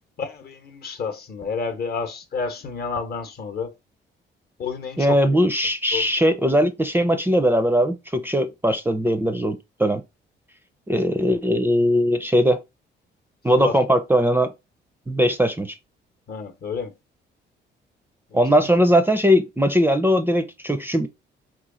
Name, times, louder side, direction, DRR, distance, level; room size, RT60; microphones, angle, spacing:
voice 1, 0.2-3.7 4.6-5.2 5.9-6.1 13.6-13.8 16.3-16.9 18.3-18.7, left 5 dB, 50° left, 0.8 m, -30 dB
voice 2, 5.0-10.0 10.9-12.6 13.4-14.5 15.1-15.7 18.3-21.1, equal, 10° right, 0.4 m, -20 dB
3.0 x 2.3 x 3.7 m
cardioid pair, 90°, 20 cm